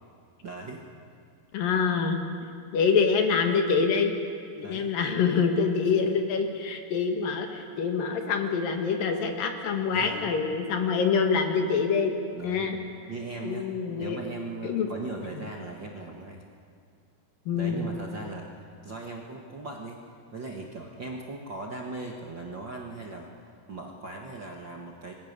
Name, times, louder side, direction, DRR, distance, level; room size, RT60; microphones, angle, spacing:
voice 1, 0.4-0.9 4.6-4.9 5.8-6.0 9.8-10.3 12.3-12.7 13.1-13.7 14.0-16.4 17.5-20.0 20.3-23.3 23.7-25.1, right 3 dB, 45° right, -1 dB, 1.5 m, -39 dB
voice 2, 1.5-2.2 2.7-4.1 4.6-12.1 12.4-12.8 13.4-14.2 14.6-14.9 17.5-17.9, left 5 dB, 70° left, 4 dB, 3.4 m, -25 dB
27.0 x 21.0 x 6.8 m, 2.3 s
omnidirectional pair, 4.1 m